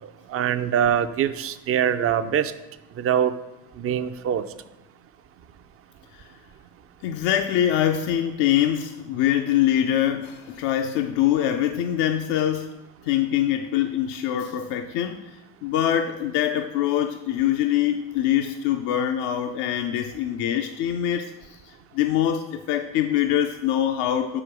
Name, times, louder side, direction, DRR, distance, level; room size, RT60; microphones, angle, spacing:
voice 1, 0.0-2.5 3.0-3.3 3.8-4.5, right 9 dB, 30° right, 11 dB, 0.5 m, -23 dB
voice 2, 7.0-12.7 13.1-15.2 15.6-21.3 21.9-24.4, left 11 dB, 60° left, 5 dB, 0.6 m, -23 dB
5.0 x 4.6 x 5.9 m, 0.98 s
hypercardioid pair, 70°, 45 cm